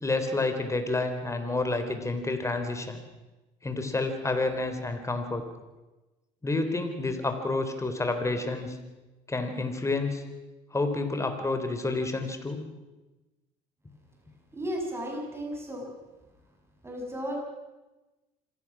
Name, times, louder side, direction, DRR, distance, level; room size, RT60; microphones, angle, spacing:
voice 1, 0.0-3.0 3.6-5.4 6.4-8.8 9.3-10.2 10.7-12.6, left 2 dB, 15° left, 7 dB, 3.7 m, -29 dB
voice 2, 14.5-15.9 16.8-17.4, equal, 15° right, 0 dB, 6.7 m, -34 dB
26.0 x 16.5 x 6.2 m, 1.1 s
supercardioid pair, 75°, 17 cm